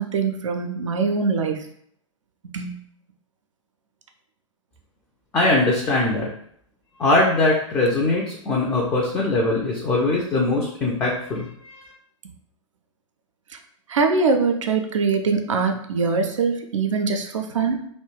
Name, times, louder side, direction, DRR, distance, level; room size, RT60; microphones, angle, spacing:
voice 1, 0.0-1.6 2.5-2.8 13.9-17.8, right 4 dB, 70° right, 5 dB, 0.4 m, -22 dB
voice 2, 5.3-6.3 7.0-11.9, left 2 dB, 15° left, -3 dB, 0.3 m, -21 dB
2.2 x 2.1 x 3.0 m, 0.68 s
figure-of-eight pair, 100°, 16 cm